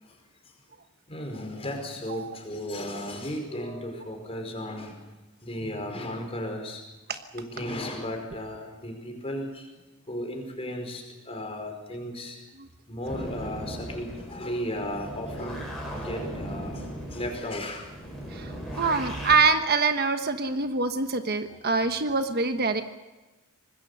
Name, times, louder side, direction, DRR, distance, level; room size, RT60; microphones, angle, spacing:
voice 1, 1.1-4.9 5.4-6.8 7.3-9.7 10.1-12.4 12.9-16.8 17.1-17.9 18.7-18.8, left 1 dB, 25° left, 4 dB, 5.0 m, -35 dB
sound 1, 13.0-19.4, right 1 dB, ahead, 7.2 m, -37 dB
voice 2, 18.3-22.8, right 4 dB, 45° right, 7 dB, 1.2 m, -25 dB
25.5 x 20.5 x 6.9 m, 1.1 s
head